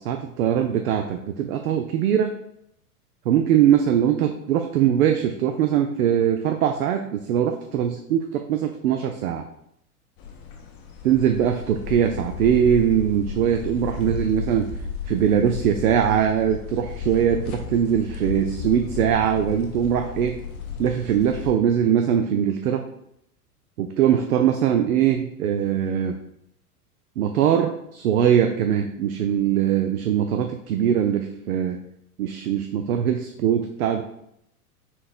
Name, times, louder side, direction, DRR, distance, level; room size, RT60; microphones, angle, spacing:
voice 1, 0.1-2.4 3.3-9.5 11.0-14.7 15.1-20.4 20.8-22.9 23.8-26.2 27.2-31.8 32.2-34.0, right 9 dB, 70° right, 5 dB, 0.5 m, -21 dB
sound 1, 10.2-21.5, left 7 dB, 30° left, 0.6 m, -34 dB
4.0 x 3.9 x 2.5 m, 0.75 s
figure-of-eight pair, 95°, 46 cm